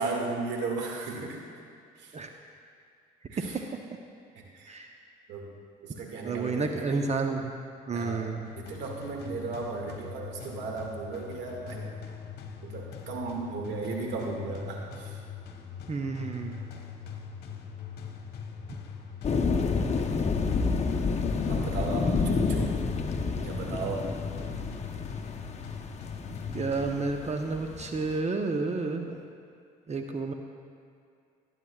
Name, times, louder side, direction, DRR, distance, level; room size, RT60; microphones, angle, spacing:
voice 1, 0.0-1.4 2.0-2.1 3.3-3.5 4.3-4.8 5.3-5.5 5.8-7.1 7.9-8.3 8.6-11.9 12.6-15.2 21.5-22.8 23.4-24.1, right 4 dB, 70° right, 0 dB, 2.1 m, -35 dB
voice 2, 6.2-7.5 7.9-8.5 15.9-16.6 26.5-29.2 29.9-30.3, right 3 dB, 35° right, 4 dB, 0.9 m, -31 dB
sound 1, 8.4-27.4, left 6 dB, 55° left, 1.3 m, -41 dB
sound 2, 19.2-28.1, left 4 dB, 35° left, 1.0 m, -29 dB
20.5 x 9.1 x 2.4 m, 2.4 s
hypercardioid pair, 60°, 19 cm